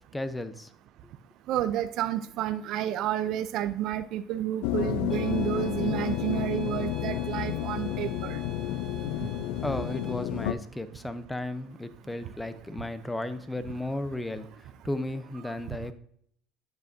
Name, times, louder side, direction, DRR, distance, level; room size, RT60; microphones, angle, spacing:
voice 1, 0.1-0.7 9.6-15.9, left 1 dB, 10° left, 12 dB, 0.7 m, -34 dB
voice 2, 1.5-8.4, right 11 dB, 60° right, 10 dB, 0.4 m, -30 dB
sound 1, 4.6-10.5, left 12 dB, 80° left, 0.4 m, -31 dB
sound 2, 5.1-10.1, right 7 dB, 20° right, 1.0 m, -48 dB
9.9 x 6.7 x 2.6 m, 0.65 s
supercardioid pair, 90°, 0 cm